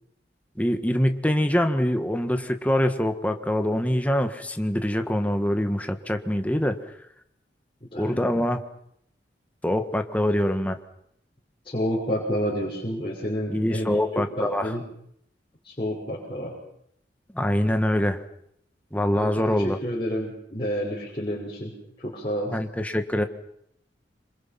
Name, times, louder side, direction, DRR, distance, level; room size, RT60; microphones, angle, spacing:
voice 1, 0.6-6.8 8.0-8.6 9.6-10.8 13.5-14.7 17.3-18.2 18.9-19.8 22.5-23.2, left 1 dB, 10° left, 6 dB, 1.7 m, -24 dB
voice 2, 7.9-8.3 11.6-14.0 14.4-14.8 15.6-16.5 19.1-21.7 22.0-22.6, equal, 30° left, -5 dB, 5.8 m, -29 dB
26.5 x 26.5 x 6.0 m, 0.74 s
head